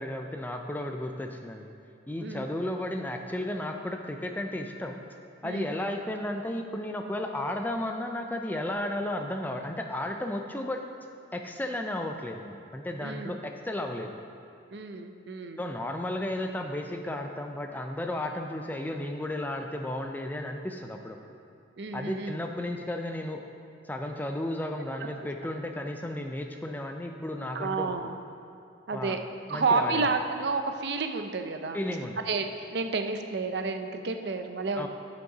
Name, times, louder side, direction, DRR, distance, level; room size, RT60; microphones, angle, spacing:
voice 1, 0.0-1.7 2.1-5.0 5.4-10.9 11.3-14.1 15.6-21.2 21.9-23.4 23.8-28.1 28.9-29.2 29.5-30.0 31.7-32.2 34.8-34.9, left 1 dB, 10° left, 4 dB, 0.4 m, -33 dB
voice 2, 13.0-13.4 14.7-15.6 21.8-22.4 27.5-28.1 28.9-29.2 29.5-31.8 32.3-34.9, right 4 dB, 60° right, 6 dB, 0.5 m, -30 dB
11.0 x 5.2 x 4.9 m, 2.5 s
head